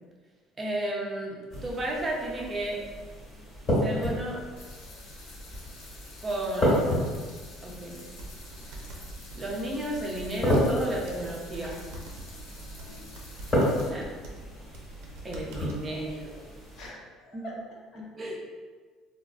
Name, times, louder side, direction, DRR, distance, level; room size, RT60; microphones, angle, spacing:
voice 1, 0.6-2.8 3.8-4.4 6.2-6.8 7.6-8.1 9.4-11.8 13.8-14.1 15.2-16.3 17.3-17.5 18.0-18.4, right 1 dB, 20° right, -2 dB, 0.5 m, -33 dB
sound 1, 1.5-16.9, equal, 25° left, 1.3 m, -32 dB
sound 2, 4.6-13.9, left 2 dB, 85° left, 0.6 m, -49 dB
sound 3, 8.2-15.9, right 2 dB, 80° right, 0.5 m, -44 dB
voice 2, 15.9-16.4 16.7-18.0, equal, 50° left, -3 dB, 0.7 m, -44 dB
3.5 x 2.0 x 2.4 m, 1.4 s
cardioid pair, 135°, 0 cm